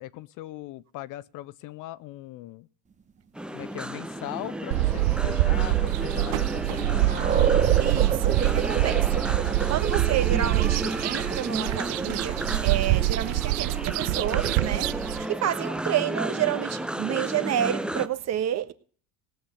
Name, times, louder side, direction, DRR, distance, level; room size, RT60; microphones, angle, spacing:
voice 1, 0.0-2.7 3.5-7.4, left 15 dB, 50° left, 0.7 m, -39 dB
sound 1, 3.4-18.1, right 1 dB, ahead, 0.6 m, -33 dB
sound 2, 4.6-16.0, right 6 dB, 15° right, 1.1 m, -34 dB
sound 3, 4.7-15.3, right 19 dB, 65° right, 0.6 m, -25 dB
voice 2, 7.8-9.4 9.7-18.7, right 11 dB, 40° right, 1.4 m, -30 dB
17.5 x 9.0 x 5.7 m
supercardioid pair, 125°, 41 cm